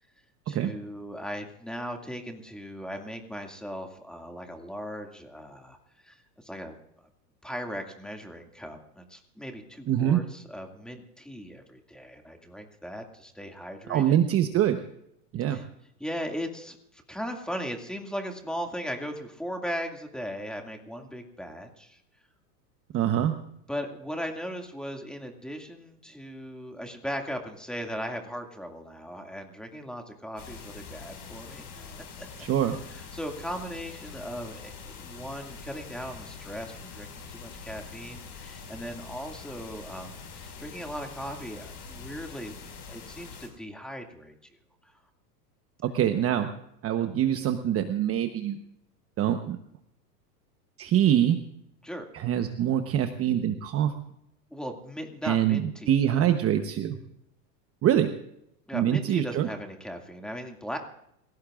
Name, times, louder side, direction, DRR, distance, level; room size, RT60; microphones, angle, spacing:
voice 1, 0.5-5.8 6.0-6.7 7.4-14.2 15.4-15.6 16.0-22.0 23.7-32.3 32.9-37.1 37.3-42.5 42.9-44.4 44.8-44.9 51.8-52.1 54.5-56.3 58.7-60.8, equal, ahead, 3 dB, 2.2 m, -38 dB
voice 2, 9.9-10.2 13.9-14.8 15.3-15.6 22.9-23.3 32.5-32.8 45.8-46.5 46.8-48.6 49.2-49.6 50.8-51.4 52.1-53.9 55.2-57.0 57.8-58.1 58.7-59.5, right 10 dB, 30° right, 7 dB, 1.1 m, -24 dB
sound 1, 30.4-43.5, left 5 dB, 40° left, 5.6 m, -44 dB
28.0 x 17.0 x 2.5 m, 0.75 s
hypercardioid pair, 120°, 48 cm